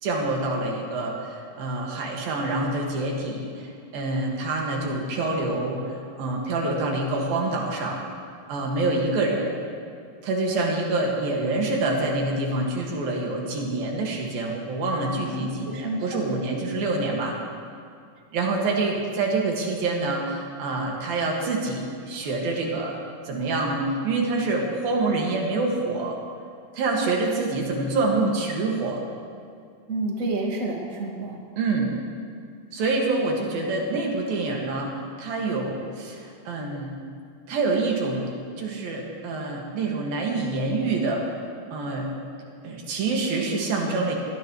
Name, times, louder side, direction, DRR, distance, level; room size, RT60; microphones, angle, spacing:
voice 1, 0.0-8.0 8.5-9.5 10.2-17.4 18.3-23.0 23.3-26.2 26.7-29.0 31.6-31.9 32.7-37.0 37.5-38.3 38.6-41.4 41.7-42.1 42.6-44.1, right 2 dB, 80° right, -1 dB, 3.9 m, -26 dB
voice 2, 15.3-16.4 16.8-16.9 29.9-31.4, right 2 dB, 30° right, -1 dB, 1.9 m, -30 dB
23.5 x 18.0 x 3.3 m, 2.3 s
omnidirectional pair, 4.1 m